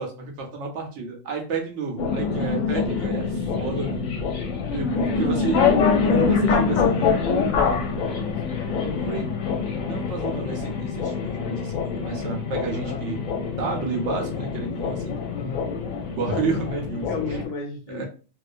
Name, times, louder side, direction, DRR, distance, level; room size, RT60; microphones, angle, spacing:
voice 1, 0.0-4.0 4.6-5.6 6.0-7.3 7.6-8.3 8.9-9.2 9.9-13.2 13.6-15.1 16.1-17.1 17.9-18.0, right 4 dB, 65° right, 2 dB, 0.8 m, -31 dB
sound 1, 2.0-17.5, left 5 dB, 70° left, 0.9 m, -25 dB
voice 2, 2.3-3.1 8.2-9.2 12.7-13.0 15.3-15.7 17.1-18.0, left 4 dB, 40° left, -2 dB, 0.5 m, -35 dB
2.4 x 2.1 x 2.5 m, 0.36 s
omnidirectional pair, 1.5 m